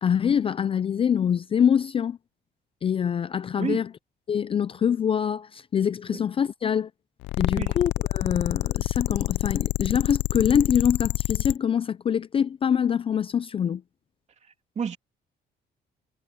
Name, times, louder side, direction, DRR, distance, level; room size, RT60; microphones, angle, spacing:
voice 1, 0.0-2.2 2.8-3.9 4.3-6.9 7.4-13.8, left 8 dB, 30° left, 0.4 m, -24 dB
voice 2, 3.6-3.8 6.1-6.2 7.5-7.7 14.8-15.0, right 6 dB, 40° right, 2.7 m, -30 dB
sound 1, 7.2-11.6, left 19 dB, 85° left, 0.5 m, -27 dB
cardioid pair, 130°, 19 cm